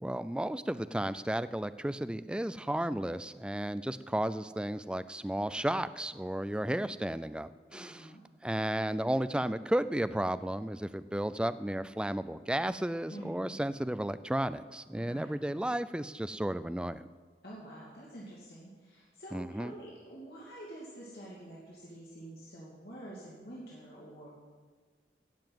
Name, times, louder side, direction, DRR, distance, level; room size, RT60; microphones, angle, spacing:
voice 1, 0.0-8.1 8.4-17.0 19.3-19.7, right 1 dB, 5° right, 13 dB, 0.3 m, -33 dB
voice 2, 7.7-8.2 13.1-13.6 15.0-15.3 17.4-24.3, right 1 dB, 60° left, -6 dB, 2.6 m, -48 dB
17.0 x 7.0 x 7.7 m, 1.5 s
head